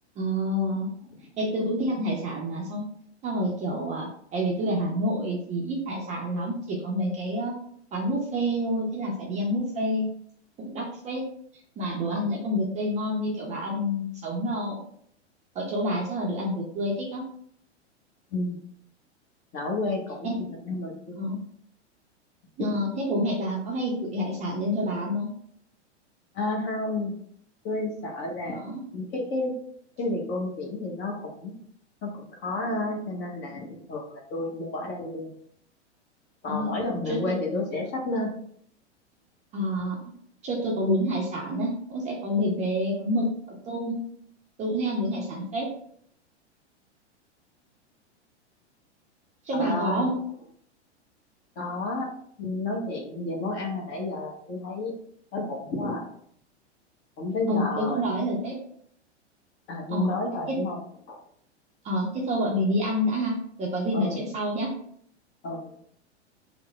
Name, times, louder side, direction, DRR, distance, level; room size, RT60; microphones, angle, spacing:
voice 1, 0.2-0.9 1.4-2.8 3.2-7.6 7.9-10.1 10.6-11.2 11.8-14.8 15.5-17.2 20.2-20.4 21.2-21.4 22.6-25.3 28.5-28.8 36.5-36.7 37.1-37.3 39.5-40.0 40.4-43.3 43.7-44.0 44.6-45.7 49.4-50.1 57.5-58.5 59.9-60.1 60.5-60.6 61.8-63.3 63.6-64.7, equal, 20° right, -2 dB, 0.5 m, -28 dB
voice 2, 18.3-18.6 19.5-21.3 22.6-22.7 26.3-27.2 27.6-28.6 28.9-29.5 30.0-31.6 32.0-35.3 36.4-38.3 49.5-50.1 51.6-52.1 52.4-54.9 55.3-56.0 57.2-58.0 59.7-60.8 61.1-61.2 63.9-64.2 65.4-65.7, left 2 dB, 30° left, 0 dB, 0.8 m, -31 dB
3.2 x 2.0 x 3.2 m, 0.64 s
hypercardioid pair, 105°, 35 cm